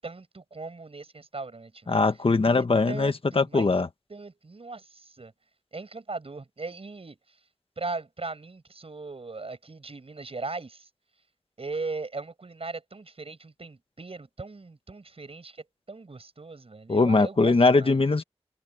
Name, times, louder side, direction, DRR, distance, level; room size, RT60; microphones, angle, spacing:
voice 1, 0.0-2.0 2.4-3.7 4.1-5.3 5.7-7.2 7.8-10.9 11.6-15.6 15.9-18.0, right 3 dB, 65° right, 7.2 m, -38 dB
voice 2, 1.9-3.9 16.9-18.2, left 3 dB, 60° left, 1.5 m, -21 dB
wide cardioid pair, 55°, 10 cm